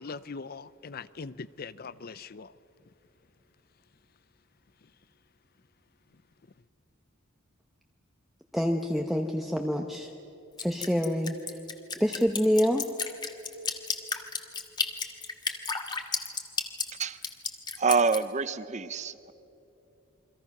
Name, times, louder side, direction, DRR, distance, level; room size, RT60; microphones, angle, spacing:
voice 1, 0.0-2.5, left 4 dB, 45° left, 17 dB, 0.6 m, -41 dB
voice 2, 8.5-10.1 10.6-11.6 12.0-12.8, equal, ahead, 2 dB, 0.9 m, -26 dB
Drip, 10.6-18.2, left 5 dB, 20° left, 1.5 m, -32 dB
voice 3, 17.8-19.3, right 5 dB, 35° right, 14 dB, 0.7 m, -26 dB
28.5 x 24.0 x 6.0 m, 2.8 s
head